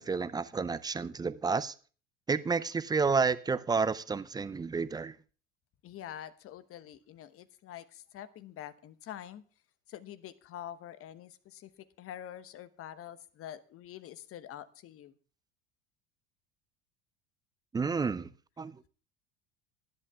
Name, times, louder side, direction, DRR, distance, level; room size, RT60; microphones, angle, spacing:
voice 1, 0.0-1.7 2.3-5.1 17.7-18.3 18.6-18.8, right 4 dB, 10° right, 0.5 m, -30 dB
voice 2, 5.8-9.4 9.9-11.7 12.0-15.1, left 11 dB, 40° left, 1.1 m, -46 dB
24.5 x 11.0 x 2.3 m
figure-of-eight pair, 70°, 37 cm